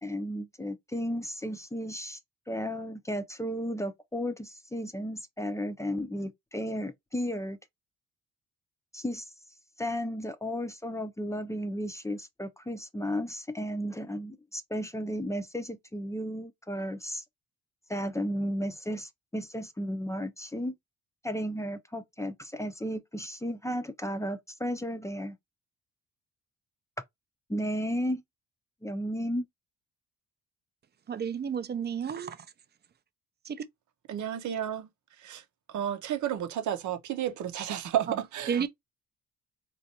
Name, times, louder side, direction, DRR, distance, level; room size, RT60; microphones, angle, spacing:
voice 1, 0.0-2.2 2.5-7.6 8.9-9.3 9.8-17.2 17.9-20.8 21.2-25.4 27.5-28.2 28.8-29.5, equal, 10° left, 0.6 m, -34 dB
voice 2, 31.1-32.5 33.4-33.7 38.5-38.7, right 7 dB, 35° right, 0.5 m, -31 dB
voice 3, 34.1-34.9 35.2-35.4 35.7-38.7, right 10 dB, 75° right, 0.8 m, -32 dB
4.3 x 2.5 x 2.8 m
cardioid pair, 90°, 30 cm